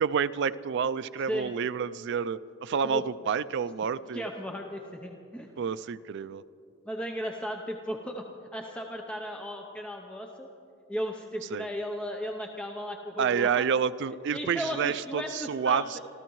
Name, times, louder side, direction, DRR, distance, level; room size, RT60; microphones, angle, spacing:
voice 1, 0.0-4.2 5.6-6.4 11.5-11.7 13.2-16.0, right 7 dB, 55° right, 15 dB, 0.3 m, -29 dB
voice 2, 4.1-5.5 6.9-8.3 8.5-10.5 10.9-13.7 14.3-16.0, equal, 5° left, 2 dB, 0.6 m, -35 dB
26.5 x 14.5 x 3.1 m, 2.7 s
head